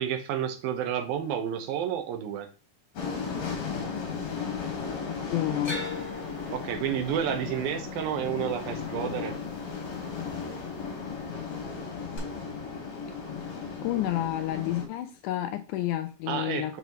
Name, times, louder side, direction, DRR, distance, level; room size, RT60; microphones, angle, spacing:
voice 1, 0.0-2.5 6.5-9.3 16.3-16.8, right 9 dB, 80° right, 6 dB, 2.9 m, -30 dB
sound 1, 3.0-14.9, left 5 dB, 55° left, 2.8 m, -35 dB
voice 2, 5.3-5.9 13.8-16.8, left 13 dB, 90° left, 7 dB, 1.7 m, -30 dB
sound 2, 5.6-9.8 10.1-10.8 12.2-12.3, left 2 dB, 30° left, 3.1 m, -41 dB
6.9 x 5.9 x 3.0 m, 0.32 s
omnidirectional pair, 4.2 m